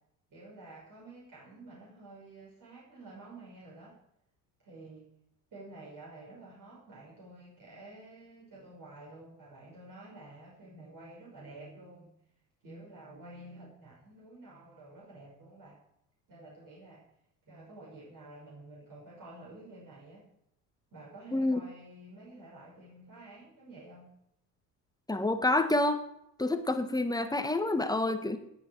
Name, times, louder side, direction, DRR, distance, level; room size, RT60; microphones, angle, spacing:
voice 1, 0.3-4.0 4.6-5.1 5.5-12.2 12.6-15.8 16.3-17.0 17.4-20.3 20.9-24.2, right 2 dB, 40° right, -5 dB, 5.7 m, -50 dB
voice 2, 25.1-26.0 26.4-28.4, left 2 dB, 10° left, 9 dB, 1.6 m, -28 dB
18.5 x 8.9 x 4.7 m, 0.76 s
figure-of-eight pair, 55°, 49 cm